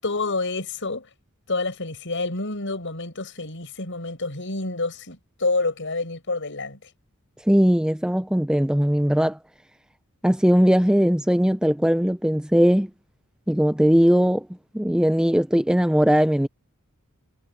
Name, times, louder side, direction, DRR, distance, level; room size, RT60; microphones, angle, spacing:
voice 1, 0.0-1.1 1.5-6.8, left 3 dB, 55° left, 7.6 m, -28 dB
voice 2, 7.5-9.4 10.2-12.9 13.5-14.5 14.7-16.5, equal, 5° right, 0.6 m, -19 dB
head